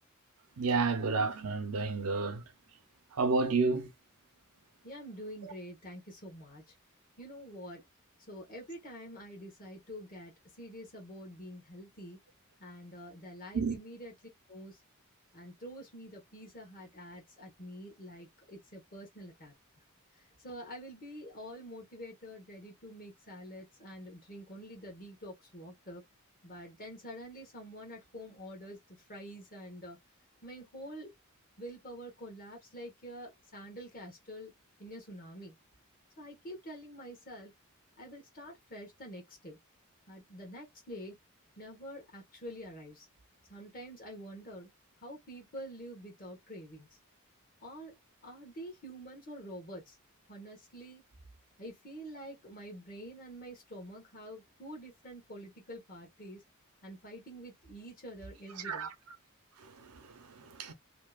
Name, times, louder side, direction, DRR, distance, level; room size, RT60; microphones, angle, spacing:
voice 1, 0.6-2.4 3.1-3.9 5.4-5.5 13.5-13.8 58.6-58.9 59.6-60.7, right 4 dB, 85° right, 0.6 m, -31 dB
voice 2, 4.8-6.7 7.2-7.8 8.3-10.3 10.6-12.2 12.6-14.1 14.5-14.8 15.3-19.5 20.4-26.0 26.4-30.0 30.4-31.1 31.6-34.5 34.8-35.5 36.2-37.5 38.0-39.6 40.1-41.2 41.6-43.1 43.5-44.7 45.0-46.9 47.6-48.0 48.2-50.0 50.3-51.0 51.6-56.4 56.8-58.9, equal, 40° left, 1.1 m, -47 dB
2.7 x 2.1 x 2.3 m
head